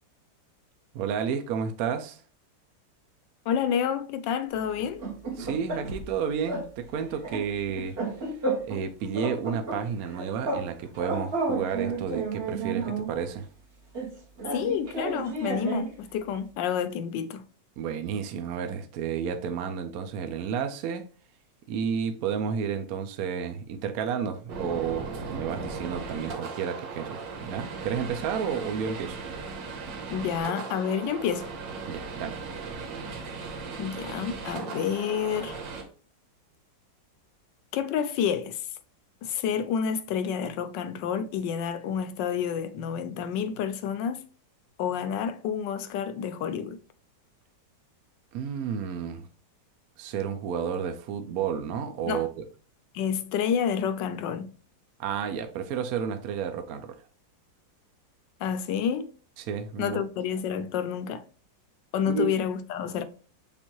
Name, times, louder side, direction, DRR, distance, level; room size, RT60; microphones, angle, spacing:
voice 1, 0.9-2.2 5.4-8.0 8.7-13.5 17.8-21.0 21.7-29.2 31.9-32.4 48.3-49.3 50.0-52.3 55.0-57.0 59.4-60.0 62.0-62.3, right 7 dB, 70° right, 0.8 m, -31 dB
voice 2, 3.5-5.0 14.5-17.4 30.1-31.5 33.8-35.6 37.7-38.7 39.2-44.2 44.8-46.8 52.1-52.2 52.9-54.5 58.4-59.1 59.8-61.2 61.9-63.0, left 8 dB, 75° left, 1.2 m, -29 dB
sound 1, 4.8-6.1 6.5-6.7 6.9-8.8 9.1-10.7 10.9-13.1 13.9-15.9, right 3 dB, 40° right, 1.2 m, -32 dB
sound 2, 24.5-35.8, right 4 dB, 85° right, 1.7 m, -37 dB
7.0 x 2.5 x 3.0 m
omnidirectional pair, 2.0 m